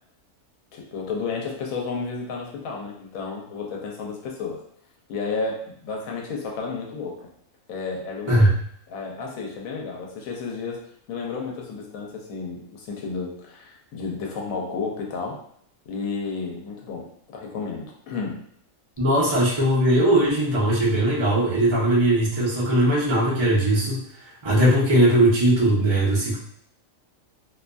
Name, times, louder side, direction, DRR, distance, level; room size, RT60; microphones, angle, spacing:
voice 1, 0.7-4.6 5.1-7.2 7.7-8.5 8.9-10.8 11.1-15.4 15.9-17.1 17.3-18.4 19.3-19.4, left 4 dB, 80° left, -1 dB, 1.0 m, -32 dB
voice 2, 19.0-24.0 24.4-26.4, right 1 dB, 30° right, -5 dB, 0.5 m, -19 dB
2.6 x 2.5 x 2.2 m, 0.67 s
omnidirectional pair, 1.4 m